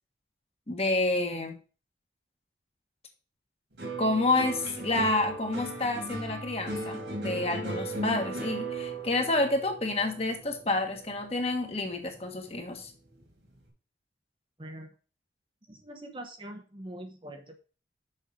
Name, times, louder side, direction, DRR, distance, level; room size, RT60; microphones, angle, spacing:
voice 1, 0.7-1.6 4.0-12.9, left 2 dB, 35° left, 4 dB, 1.4 m, -29 dB
sound 1, 3.8-12.2 12.6-13.2, right 2 dB, 75° right, 3.2 m, -37 dB
voice 2, 14.6-14.9 15.7-17.6, right 1 dB, 25° right, 5 dB, 0.9 m, -43 dB
6.5 x 5.5 x 6.0 m, 0.37 s
head